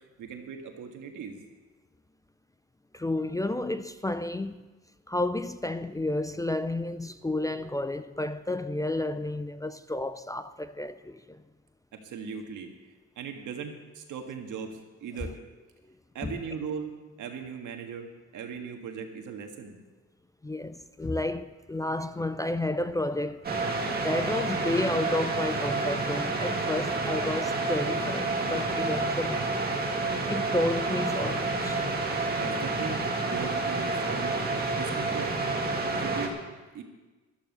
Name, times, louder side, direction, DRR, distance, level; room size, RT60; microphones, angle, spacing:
voice 1, 0.2-1.4 11.9-12.7 13.2-15.3 16.1-16.9 17.2-19.8 32.3-34.4 34.7-35.3 35.9-36.4 36.7-36.8, right 6 dB, 90° right, 1.7 m, -38 dB
voice 2, 2.9-4.7 5.1-11.4 16.2-16.4 20.4-23.5 24.0-29.4 30.3-31.8, left 1 dB, 10° left, 0.3 m, -31 dB
sound 1, 23.4-36.3, right 3 dB, 30° right, 1.8 m, -29 dB
13.5 x 12.0 x 5.3 m
cardioid pair, 130°, 30 cm